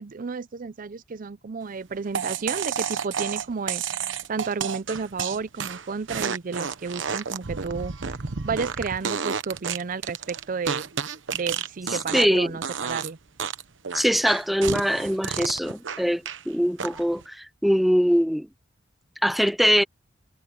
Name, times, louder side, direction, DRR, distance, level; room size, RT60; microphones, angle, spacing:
voice 1, 0.0-8.2 8.4-10.9 11.3-13.2, right 5 dB, 45° right, 0.5 m, -32 dB
sound 1, 2.1-12.4 12.6-13.1 13.4-16.4 16.8-17.2, right 6 dB, 75° right, 1.0 m, -31 dB
voice 2, 12.1-12.5 13.9-18.5 19.2-19.8, equal, ahead, 0.6 m, -22 dB
head